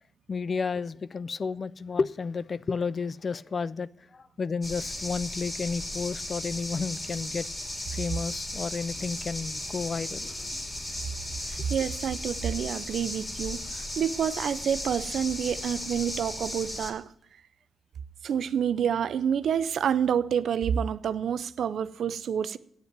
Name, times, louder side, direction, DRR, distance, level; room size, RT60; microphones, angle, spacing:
voice 1, 0.3-7.5 7.9-10.6 11.6-11.7, left 5 dB, 50° left, 0.4 m, -32 dB
sound 1, 4.6-16.9, left 1 dB, 30° left, 2.5 m, -36 dB
voice 2, 11.5-17.1 18.2-22.6, right 8 dB, 85° right, 0.5 m, -28 dB
9.0 x 7.9 x 9.2 m
cardioid pair, 85°, 0 cm